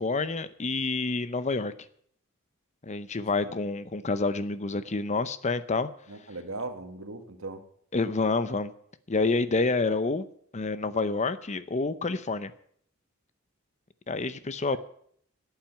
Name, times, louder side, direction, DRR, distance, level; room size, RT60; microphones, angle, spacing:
voice 1, 0.0-1.7 2.8-5.9 7.9-8.7 9.1-10.2 10.5-12.5 14.1-14.8, left 3 dB, 35° left, 14 dB, 0.7 m, -28 dB
voice 2, 6.1-7.6 14.7-14.8, right 3 dB, 85° right, 7 dB, 1.6 m, -38 dB
12.0 x 9.0 x 8.9 m, 0.64 s
head